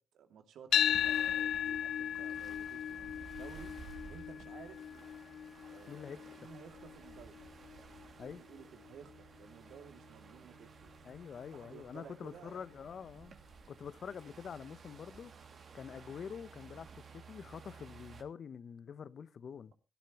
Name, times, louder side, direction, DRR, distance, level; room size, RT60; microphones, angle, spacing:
voice 1, 0.0-3.8 4.1-4.9 5.6-7.4 8.1-10.9 11.5-12.7, right 7 dB, 75° right, 2.7 m, -55 dB
sound 1, 0.7-8.9, left 10 dB, 70° left, 0.6 m, -36 dB
sound 2, 0.7-18.2, right 5 dB, 50° right, 2.6 m, -55 dB
voice 2, 5.9-6.5 8.2-8.4 11.0-13.4 13.7-15.3 15.7-19.7, left 7 dB, 50° left, 0.9 m, -46 dB
17.5 x 13.0 x 3.1 m
cardioid pair, 90°, 0 cm